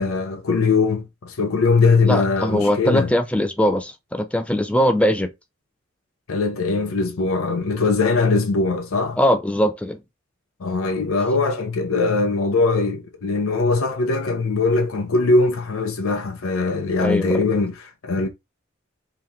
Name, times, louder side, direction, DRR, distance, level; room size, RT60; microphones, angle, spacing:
voice 1, 0.0-3.1 6.3-9.2 10.6-18.3, left 3 dB, 85° left, 0.6 m, -21 dB
voice 2, 2.1-5.3 9.2-10.0 17.0-17.4, equal, 5° left, 0.4 m, -21 dB
2.9 x 2.9 x 3.5 m
head